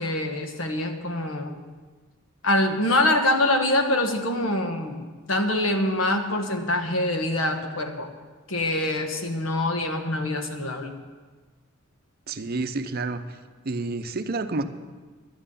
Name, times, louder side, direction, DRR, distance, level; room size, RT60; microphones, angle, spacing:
voice 1, 0.0-1.6 2.4-5.0 5.3-8.1 8.5-10.9, left 1 dB, 70° left, 5 dB, 1.4 m, -24 dB
voice 2, 12.3-13.2 13.6-14.7, right 3 dB, 50° right, 9 dB, 0.7 m, -29 dB
11.5 x 9.0 x 7.2 m, 1.4 s
head